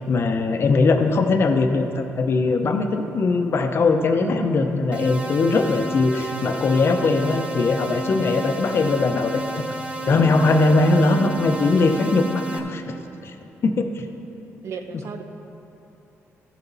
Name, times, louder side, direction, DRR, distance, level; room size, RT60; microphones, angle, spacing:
voice 1, 0.1-9.6 10.0-13.3 13.6-14.1, left 3 dB, 50° left, 6 dB, 0.7 m, -20 dB
voice 2, 4.2-4.7 14.6-15.2, right 5 dB, 65° right, 6 dB, 0.8 m, -32 dB
sound 1, 4.9-12.6, right 1 dB, 20° right, 0.9 m, -31 dB
14.0 x 7.0 x 4.0 m, 3.0 s
cardioid pair, 110°, 5 cm